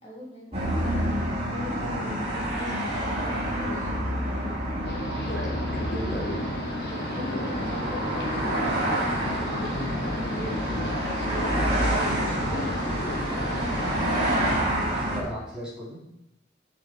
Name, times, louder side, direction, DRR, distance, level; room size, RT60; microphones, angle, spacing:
voice 1, 0.0-4.5 6.9-12.5 13.2-14.4, equal, 30° left, -6 dB, 3.7 m, -41 dB
sound 1, 0.5-15.2, right 1 dB, 35° right, 2.8 m, -28 dB
voice 2, 3.6-4.0 4.5-4.6 5.0-6.4 9.7-9.9 15.1-16.0, equal, 5° right, -9 dB, 4.3 m, -36 dB
sound 2, 4.8-14.6, left 1 dB, 55° left, 1.3 m, -34 dB
8.2 x 7.1 x 5.5 m, 0.81 s
head